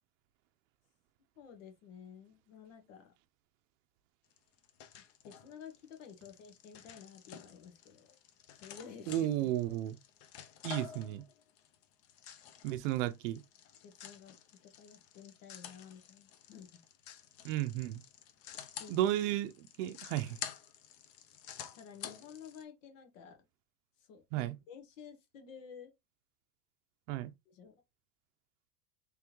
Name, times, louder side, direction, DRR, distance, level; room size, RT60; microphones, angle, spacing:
voice 1, 1.4-3.1 5.2-8.2 8.5-9.5 13.8-14.3 14.6-16.8 18.7-19.0 21.8-23.4 24.0-25.9 27.5-27.7, left 7 dB, 80° left, 1.4 m, -52 dB
sound 1, 4.3-22.6, left 9 dB, 40° left, 0.6 m, -50 dB
voice 2, 9.1-10.0 10.6-11.2 12.6-13.4 17.4-18.0 18.9-19.5 19.8-20.4 24.3-24.6 27.1-27.3, right 13 dB, 75° right, 0.6 m, -33 dB
3.5 x 3.3 x 3.0 m
supercardioid pair, 155°, 38 cm